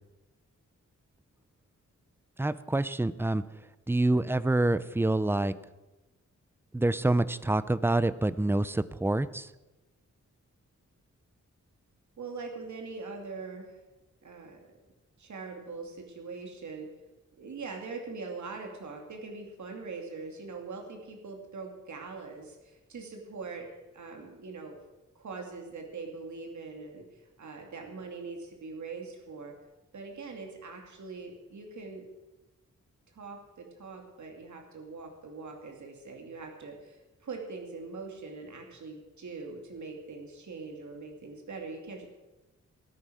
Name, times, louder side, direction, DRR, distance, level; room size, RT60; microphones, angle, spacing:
voice 1, 2.4-3.4 3.9-5.5 6.7-9.5, right 2 dB, 10° right, 15 dB, 0.5 m, -27 dB
voice 2, 12.2-13.8 14.2-14.6 15.2-16.9 17.4-24.8 25.2-29.5 29.9-32.0 33.1-42.1, right 4 dB, 70° right, 2 dB, 2.5 m, -42 dB
18.0 x 9.7 x 6.3 m, 1.1 s
wide cardioid pair, 175°, 30 cm